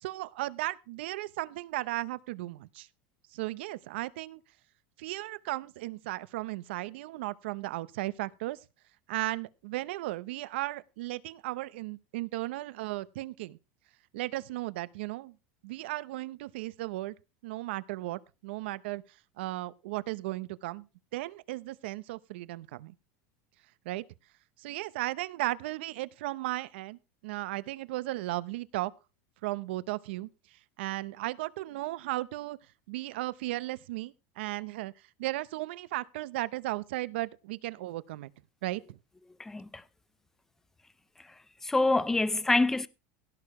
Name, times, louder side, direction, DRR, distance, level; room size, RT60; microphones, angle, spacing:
voice 1, 0.0-2.9 3.3-4.4 5.0-8.6 9.1-13.6 14.1-15.4 15.6-17.1 17.4-19.0 19.4-20.9 21.1-22.9 23.8-24.0 24.6-28.9 29.4-30.3 30.8-32.6 32.9-34.9 35.2-38.3 38.6-39.0, right 18 dB, 75° right, 0.7 m, -35 dB
voice 2, 39.4-39.8 41.2-42.9, left 2 dB, 5° left, 0.5 m, -27 dB
16.5 x 6.6 x 4.9 m
supercardioid pair, 155°, 6 cm